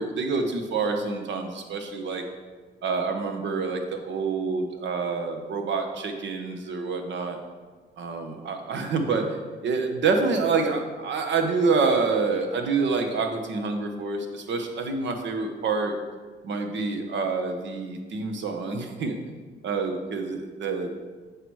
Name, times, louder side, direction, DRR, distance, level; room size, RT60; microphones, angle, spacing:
voice 1, 0.0-2.2 2.8-7.4 8.0-9.4 9.6-15.9 16.4-19.2 19.6-20.9, right 4 dB, 65° right, 5 dB, 1.1 m, -27 dB
8.0 x 4.9 x 4.7 m, 1.4 s
cardioid pair, 90°, 20 cm